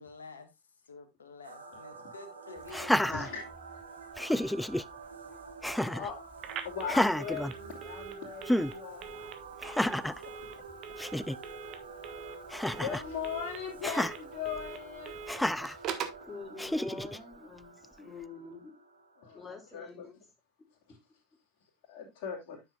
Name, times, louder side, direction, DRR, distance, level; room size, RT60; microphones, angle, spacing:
voice 1, 0.0-3.3, left 4 dB, 80° left, 1.5 m, -49 dB
sound 1, 1.4-19.9, right 5 dB, 85° right, 1.4 m, -48 dB
voice 2, 1.7-2.1 3.0-4.1 5.0-5.4 5.7-9.1 10.2-10.9 12.1-12.2 12.6-15.2 19.2-20.3 20.7-21.0 21.6-22.6, left 7 dB, 60° left, 2.8 m, -41 dB
Laughter, 2.7-3.8 4.2-4.8 5.6-6.1 6.8-8.1 8.5-8.7 9.6-10.2 10.7-10.8 11.0-11.4 12.5-13.1 13.8-14.1 15.3-15.8 16.6-17.2, left 1 dB, 5° left, 0.4 m, -30 dB
Telephone, 6.4-16.3, right 7 dB, 45° right, 1.4 m, -44 dB
voice 3, 15.9-18.8 19.3-20.1 20.9-21.0, left 3 dB, 20° left, 2.8 m, -46 dB
9.8 x 7.3 x 2.4 m
figure-of-eight pair, 80°, 0 cm